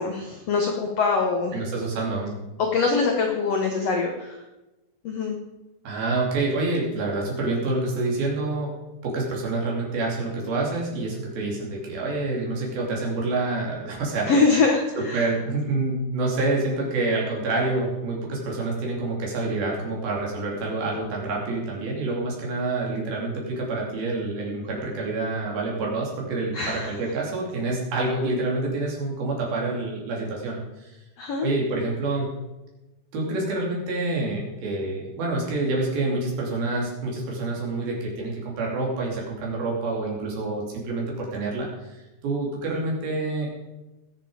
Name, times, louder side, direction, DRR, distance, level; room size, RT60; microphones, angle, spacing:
voice 1, 0.0-1.6 2.6-4.4 5.0-5.4 14.3-15.2 26.5-26.9 31.2-31.5, left 4 dB, 75° left, 2 dB, 1.5 m, -23 dB
voice 2, 1.5-2.3 5.8-8.7 9.0-14.3 15.0-30.9 31.4-32.3 33.1-43.5, right 2 dB, 70° right, -2 dB, 4.7 m, -27 dB
20.0 x 7.1 x 5.0 m, 1.0 s
omnidirectional pair, 4.4 m